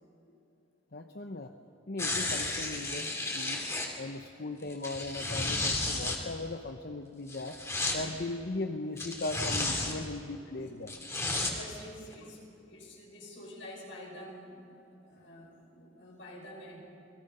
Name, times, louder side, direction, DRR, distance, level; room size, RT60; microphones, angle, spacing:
voice 1, 0.9-1.5 1.9-3.7 4.0-7.6 7.9-10.9, left 2 dB, 55° left, 5 dB, 0.9 m, -38 dB
sound 1, 2.0-3.9 4.7-6.2 7.3-8.0 9.0-10.0 10.9-11.5 12.1-12.2, left 2 dB, 15° left, 2.7 m, -33 dB
voice 2, 11.5-14.8 15.0-16.8, left 1 dB, 90° left, -1 dB, 5.9 m, -48 dB
28.5 x 20.5 x 5.5 m, 2.7 s
head